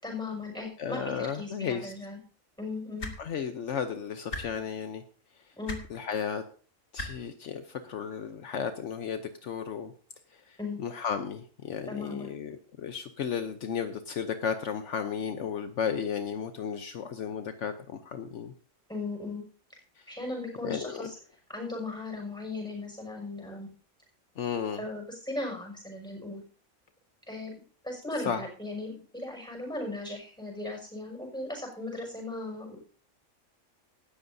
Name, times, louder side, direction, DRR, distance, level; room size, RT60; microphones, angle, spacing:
voice 1, 0.0-2.2 2.6-3.1 5.5-5.8 10.6-10.8 11.9-12.3 18.9-19.4 20.1-21.2 21.5-23.7 24.8-26.4 27.3-27.5 27.8-32.8, left 2 dB, 5° left, 1 dB, 6.0 m, -37 dB
voice 2, 0.8-1.9 3.2-5.0 5.9-6.4 6.9-9.9 10.8-18.5 20.6-21.1 24.4-24.8 28.3-28.4, left 7 dB, 70° left, 8 dB, 1.1 m, -34 dB
sound 1, 3.0-3.2 4.3-4.4 5.7-5.8 7.0-7.1 8.3-8.4, left 2 dB, 90° left, 2.7 m, -35 dB
17.0 x 13.5 x 2.7 m, 0.42 s
omnidirectional pair, 1.3 m